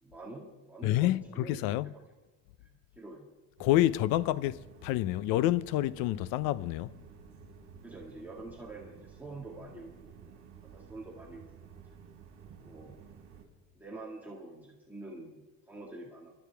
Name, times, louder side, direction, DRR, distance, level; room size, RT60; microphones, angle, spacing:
voice 1, 0.0-1.9 2.6-3.3 7.8-10.3 10.6-11.5 12.6-13.0 13.7-16.3, right 2 dB, 5° right, 1.9 m, -47 dB
voice 2, 0.8-1.9 3.6-7.0, left 14 dB, 75° left, 0.7 m, -28 dB
sound 1, 3.6-13.4, right 7 dB, 50° right, 4.3 m, -53 dB
29.0 x 13.5 x 3.5 m
cardioid pair, 170°, 35 cm